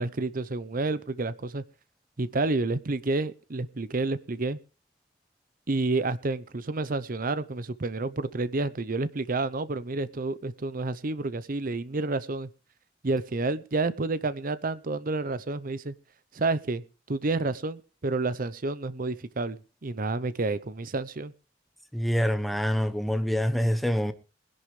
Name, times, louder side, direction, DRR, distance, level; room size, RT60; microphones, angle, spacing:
voice 1, 0.0-1.6 2.2-4.6 5.7-12.5 13.0-15.9 16.3-16.8 17.1-21.3, right 3 dB, 50° right, 0.7 m, -29 dB
voice 2, 21.9-24.1, equal, ahead, 1.0 m, -26 dB
21.0 x 11.0 x 3.3 m
head